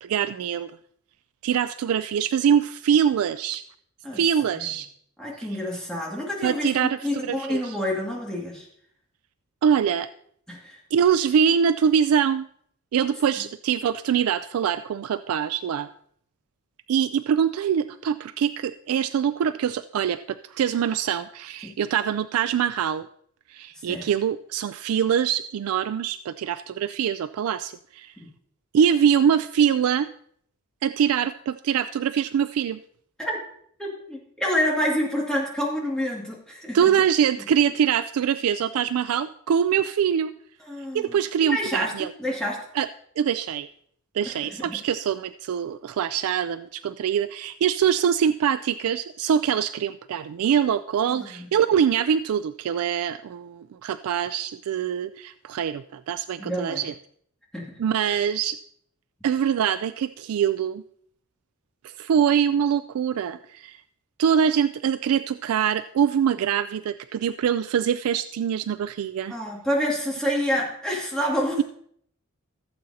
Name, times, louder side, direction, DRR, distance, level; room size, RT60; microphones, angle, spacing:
voice 1, 0.0-0.7 1.4-3.6 4.1-4.9 6.4-7.8 9.6-10.1 10.9-12.5 12.9-15.9 16.9-23.1 23.5-28.1 28.7-30.1 30.8-32.8 36.7-40.3 40.9-42.1 42.7-42.9 43.2-43.7 44.1-56.9 57.8-58.6 59.2-60.8 61.8-63.8 64.2-69.4, right 8 dB, 75° right, 13 dB, 0.3 m, -24 dB
voice 2, 5.2-8.7 10.5-10.8 21.6-21.7 23.9-24.0 28.2-28.3 33.2-33.4 33.8-36.9 40.6-41.2 41.5-41.9 42.2-42.6 44.3-44.8 51.1-51.5 56.4-56.8 57.5-57.8 69.3-71.6, equal, 5° left, -3 dB, 2.1 m, -28 dB
15.5 x 7.6 x 2.8 m, 0.66 s
head